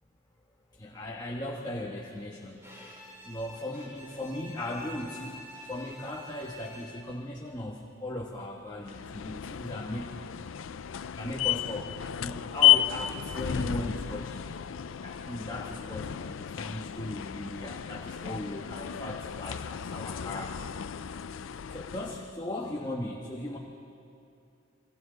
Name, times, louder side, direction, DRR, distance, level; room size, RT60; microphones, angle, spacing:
voice 1, 0.8-2.7 3.2-5.4 5.7-10.2 11.2-11.9 12.2-14.5 15.0-20.7 21.7-23.6, left 1 dB, 20° left, -2 dB, 1.4 m, -37 dB
Bowed string instrument, 2.6-7.2, equal, 15° right, 5.3 m, -48 dB
sound 1, 8.8-22.4, left 12 dB, 85° left, 0.4 m, -32 dB
29.5 x 24.0 x 4.0 m, 2.6 s
head